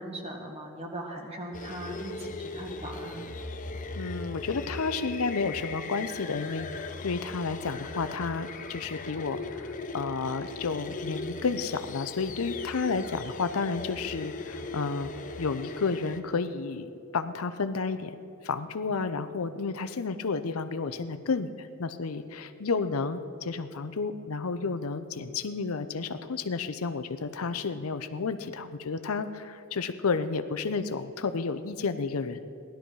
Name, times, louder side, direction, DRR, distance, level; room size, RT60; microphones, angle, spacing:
voice 1, 0.0-3.3, right 1 dB, 30° right, 2 dB, 1.6 m, -39 dB
sound 1, 1.5-16.2, left 3 dB, 35° left, 0.6 m, -39 dB
voice 2, 4.0-15.1 15.4-18.2 18.4-32.4, left 4 dB, 85° left, 11 dB, 0.6 m, -31 dB
16.5 x 11.5 x 4.7 m, 2.5 s
head